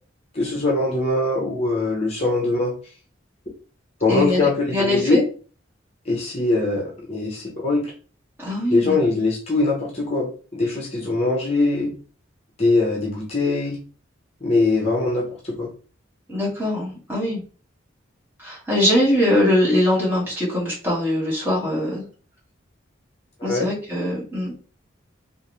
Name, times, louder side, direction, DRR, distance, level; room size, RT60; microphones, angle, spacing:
voice 1, 0.3-2.7 4.0-5.2 6.1-7.9 8.7-11.9 12.6-13.8 14.4-15.7 23.4-23.7, left 2 dB, 30° left, -2 dB, 0.8 m, -22 dB
voice 2, 4.1-5.2 8.4-9.2 16.3-17.4 18.4-22.0 23.4-24.5, left 1 dB, 10° right, -7 dB, 1.8 m, -22 dB
3.6 x 2.5 x 3.1 m, 0.39 s
head